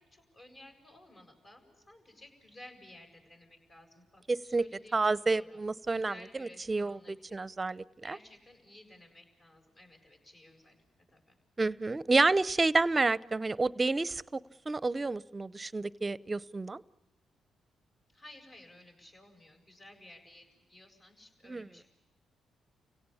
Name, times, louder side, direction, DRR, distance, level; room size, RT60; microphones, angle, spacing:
voice 1, 0.0-5.6 5.9-7.4 8.0-10.8 11.1-11.3 18.1-21.9, left 1 dB, 40° left, 4 dB, 7.9 m, -55 dB
voice 2, 4.3-4.7 4.9-8.2 11.6-16.8 21.5-21.7, right 3 dB, 30° right, 19 dB, 0.7 m, -30 dB
30.0 x 17.5 x 7.1 m, 1.1 s
supercardioid pair, 50°, 0 cm